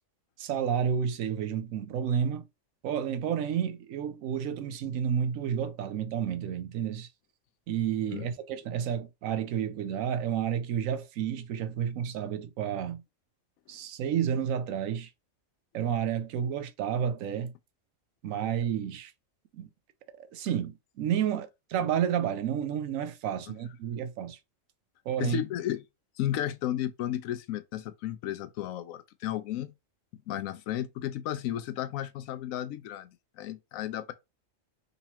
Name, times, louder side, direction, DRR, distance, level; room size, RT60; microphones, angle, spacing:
voice 1, 0.4-2.4 2.8-7.1 7.7-13.0 13.7-15.1 15.7-17.5 18.2-19.1 19.5-19.7 20.2-24.4 25.1-25.4, right 8 dB, 80° right, 1.0 m, -30 dB
voice 2, 25.2-25.8 26.2-29.7 30.3-33.1 33.4-34.1, left 12 dB, 85° left, 1.0 m, -33 dB
3.9 x 2.9 x 2.8 m
omnidirectional pair, 1.4 m